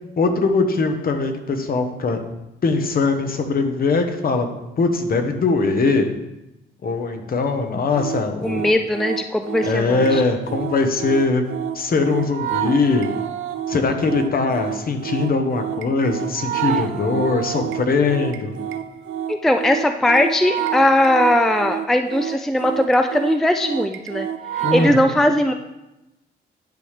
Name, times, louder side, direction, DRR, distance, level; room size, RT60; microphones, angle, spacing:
voice 1, 0.2-2.2 2.6-4.5 4.8-6.1 6.8-8.7 9.6-11.4 11.7-13.1 13.7-18.6 24.6-25.2, left 3 dB, 50° left, 6 dB, 1.1 m, -21 dB
sound 1, 7.9-25.0, right 10 dB, 85° right, 0.6 m, -29 dB
voice 2, 8.4-10.2 19.3-24.3 24.5-25.5, left 1 dB, ahead, 7 dB, 0.4 m, -19 dB
10.5 x 5.6 x 3.3 m, 0.95 s
cardioid pair, 90°, 20 cm